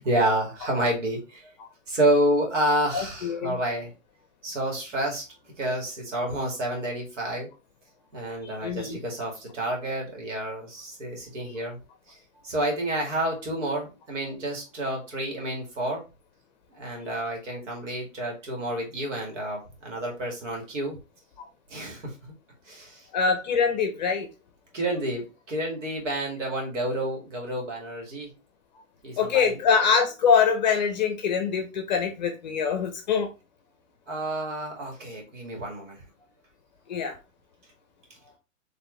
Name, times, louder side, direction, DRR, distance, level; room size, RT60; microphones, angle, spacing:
voice 1, 0.0-1.5 1.9-3.9 4.4-5.2 5.6-7.5 8.1-11.8 12.1-12.2 12.4-16.0 16.8-21.0 21.7-22.2 22.7-23.1 24.7-28.3 29.0-29.6 34.1-36.0, right 1 dB, 60° right, 0 dB, 2.2 m, -29 dB
voice 2, 2.9-3.6 8.6-9.0 21.4-21.5 23.1-24.3 29.2-33.3 36.9-37.1, left 6 dB, 35° left, 6 dB, 0.7 m, -24 dB
4.5 x 3.2 x 3.1 m, 0.30 s
hypercardioid pair, 165°, 40 cm